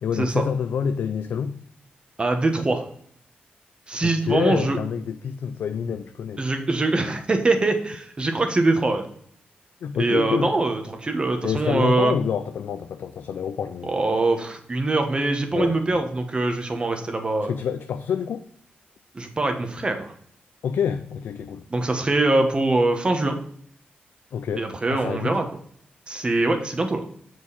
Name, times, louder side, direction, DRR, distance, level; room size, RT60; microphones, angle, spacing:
voice 1, 0.0-1.6 4.0-6.4 9.8-10.6 11.4-13.9 15.5-16.0 17.4-18.4 20.6-21.6 24.3-25.4, left 7 dB, 80° left, 0.4 m, -27 dB
voice 2, 2.2-2.8 3.9-4.8 6.4-9.0 10.0-12.1 13.9-17.5 19.1-20.1 21.7-23.4 24.6-25.4 26.1-27.0, right 2 dB, 30° right, 1.2 m, -23 dB
7.3 x 4.6 x 4.1 m
cardioid pair, 100°, 4 cm